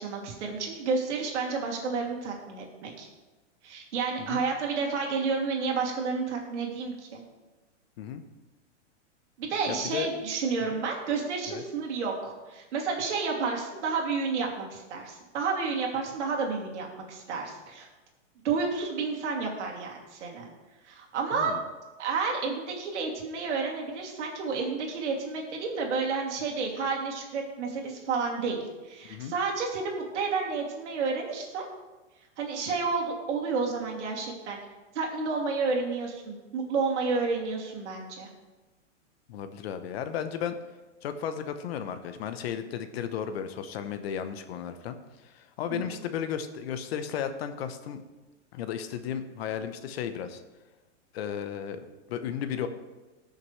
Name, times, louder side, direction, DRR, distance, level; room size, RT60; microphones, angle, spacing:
voice 1, 0.0-3.1 3.6-7.2 9.4-17.9 18.4-20.5 20.9-21.5 22.0-31.6 32.4-34.6 34.9-38.3 45.7-45.8, right 4 dB, 70° right, 0 dB, 2.7 m, -30 dB
voice 2, 9.7-10.1 10.7-10.8 11.5-11.6 21.3-21.6 29.0-29.3 39.3-40.6 41.0-45.0 45.2-48.0 48.5-50.4 51.1-52.7, left 8 dB, 55° left, 9 dB, 1.0 m, -34 dB
19.0 x 6.5 x 3.2 m, 1.2 s
hypercardioid pair, 150°, 36 cm